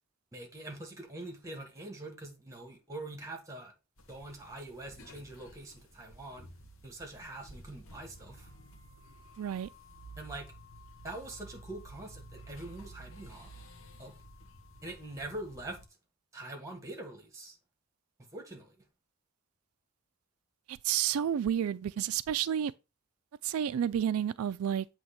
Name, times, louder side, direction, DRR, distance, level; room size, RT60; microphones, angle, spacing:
voice 1, 0.3-3.7 4.1-6.5 6.8-8.5 10.2-10.5 11.0-13.5 14.0-14.1 14.8-15.8 16.3-17.6 18.3-18.7, right 2 dB, 15° right, 1.5 m, -44 dB
sound 1, 4.0-15.9, right 1 dB, 70° left, 1.2 m, -52 dB
voice 2, 9.4-9.7 20.7-22.7 23.4-24.9, right 9 dB, 80° right, 0.3 m, -30 dB
7.8 x 3.1 x 5.8 m
head